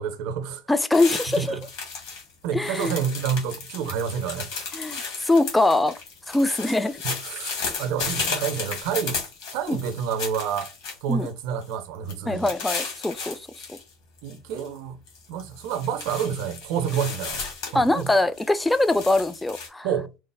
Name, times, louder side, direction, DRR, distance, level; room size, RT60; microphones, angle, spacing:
voice 1, 0.0-0.6 1.4-1.6 2.4-4.7 7.0-9.2 9.5-10.7 11.0-12.5 14.2-15.0 15.3-18.1 19.8-20.1, right 8 dB, 60° right, 0.5 m, -29 dB
voice 2, 0.7-1.6 2.5-2.9 4.7-5.9 6.3-7.0 9.7-9.8 11.1-11.3 12.3-13.4 13.7-13.8 17.7-19.9, left 2 dB, 10° left, 0.4 m, -22 dB
sound 1, 0.9-2.2 2.5-11.3 11.6-11.7 12.1-13.8 14.2-14.7 15.1-19.7, left 5 dB, 65° left, 1.5 m, -34 dB
3.1 x 2.0 x 3.2 m
figure-of-eight pair, 65°, 0 cm